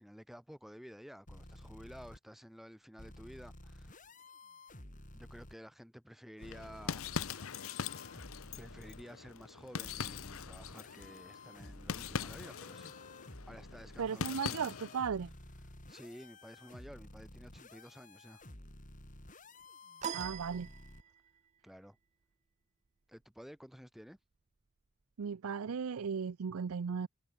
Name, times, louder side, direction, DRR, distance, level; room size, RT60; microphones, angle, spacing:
voice 1, 0.0-4.0 5.1-7.1 8.6-12.9 13.5-14.7 15.9-18.4 21.6-22.0 23.1-24.2, equal, ahead, 2.8 m, -52 dB
sound 1, 1.3-2.2 3.0-5.5 6.4-9.0 9.8-21.0, left 1 dB, 40° left, 5.7 m, -53 dB
sound 2, 6.4-15.1, left 6 dB, 80° left, 0.8 m, -42 dB
voice 2, 14.0-15.3 20.1-20.7 25.2-27.1, right 6 dB, 90° right, 0.5 m, -36 dB
sound 3, 20.0-21.4, right 8 dB, 35° right, 0.4 m, -42 dB
head